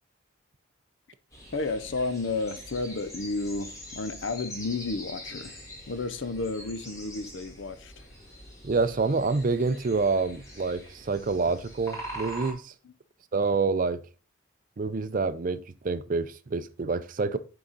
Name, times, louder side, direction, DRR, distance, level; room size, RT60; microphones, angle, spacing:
sound 1, 1.3-12.5, equal, 15° left, 1.8 m, -43 dB
voice 1, 1.5-5.6 5.9-8.1 12.8-12.9, left 3 dB, 65° left, 0.6 m, -32 dB
voice 2, 8.6-12.7 13.3-14.0 14.8-17.4, right 4 dB, 40° right, 0.4 m, -27 dB
6.3 x 4.7 x 4.0 m
head